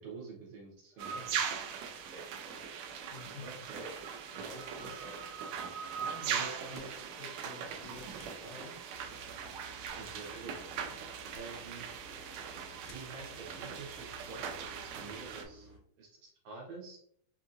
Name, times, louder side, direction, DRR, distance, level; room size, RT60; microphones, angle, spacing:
voice 1, 0.0-1.5 2.1-2.2 3.4-4.0 4.5-4.6 4.8-5.2 6.3-6.8 10.0-10.8 11.3-11.9 12.8-15.7 16.0-17.0, right 4 dB, 70° right, -3 dB, 1.9 m, -47 dB
voice 2, 0.9-1.3 3.1-3.5 4.3-5.0 6.0-8.8, left 3 dB, 60° left, -6 dB, 2.4 m, -50 dB
sound 1, 1.0-15.4, right 7 dB, 90° right, 1.5 m, -40 dB
sound 2, 6.7-7.1 8.2-8.5 9.6-10.5 11.3-11.6 12.9-13.2, left 4 dB, 85° left, 2.3 m, -59 dB
sound 3, 8.9-15.8, right 1 dB, 55° right, 2.1 m, -56 dB
5.4 x 2.7 x 2.5 m, 0.66 s
omnidirectional pair, 3.7 m